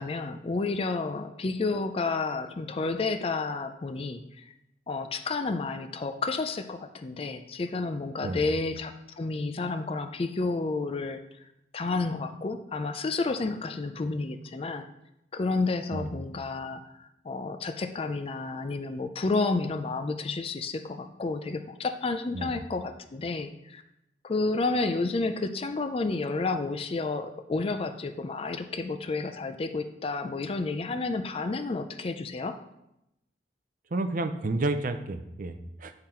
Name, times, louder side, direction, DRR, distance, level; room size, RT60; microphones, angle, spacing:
voice 1, 0.0-4.5 4.9-11.2 11.7-14.9 15.3-23.8 24.2-32.6, left 3 dB, 35° left, 8 dB, 0.4 m, -31 dB
voice 2, 8.2-8.5 15.9-16.2 22.3-22.5 33.9-35.9, right 2 dB, 50° right, 9 dB, 0.5 m, -31 dB
9.0 x 3.8 x 4.3 m, 0.85 s
head